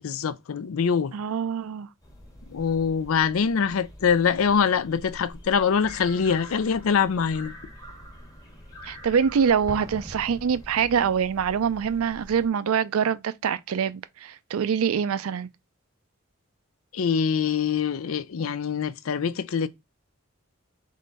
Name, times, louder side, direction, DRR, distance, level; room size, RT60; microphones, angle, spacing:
voice 1, 0.0-1.1 2.5-7.6 16.9-19.7, left 6 dB, 80° left, 0.4 m, -24 dB
voice 2, 1.1-1.9 8.8-15.5, right 7 dB, 85° right, 0.4 m, -25 dB
sound 1, 2.0-12.5, left 1 dB, 15° left, 1.0 m, -46 dB
Explosion, 9.7-11.5, right 2 dB, 15° right, 0.4 m, -42 dB
3.7 x 3.1 x 3.9 m
head